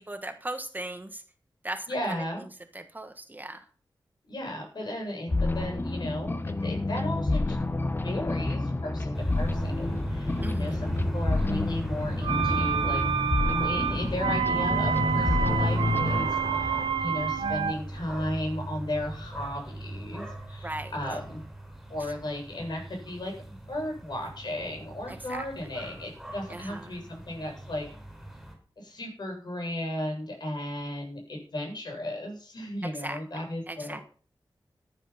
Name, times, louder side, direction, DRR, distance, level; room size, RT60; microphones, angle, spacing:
voice 1, 0.1-1.2 1.6-2.5 2.7-3.6 10.4-10.9 20.6-20.9 22.0-22.1 25.1-25.5 26.5-27.0 32.8-34.1, right 1 dB, 20° right, 7 dB, 1.4 m, -38 dB
voice 2, 1.9-2.4 4.3-7.6 8.0-13.0 13.6-21.4 21.9-23.3 23.7-27.9 28.8-34.0, left 1 dB, 60° left, 2 dB, 7.9 m, -35 dB
sound 1, 5.3-16.3, left 2 dB, 25° left, 1.0 m, -29 dB
sound 2, 9.1-28.5, right 1 dB, ahead, 6.2 m, -36 dB
sound 3, 12.2-17.7, right 7 dB, 80° right, 1.4 m, -28 dB
14.5 x 10.0 x 5.7 m, 0.42 s
wide cardioid pair, 130°, 8 cm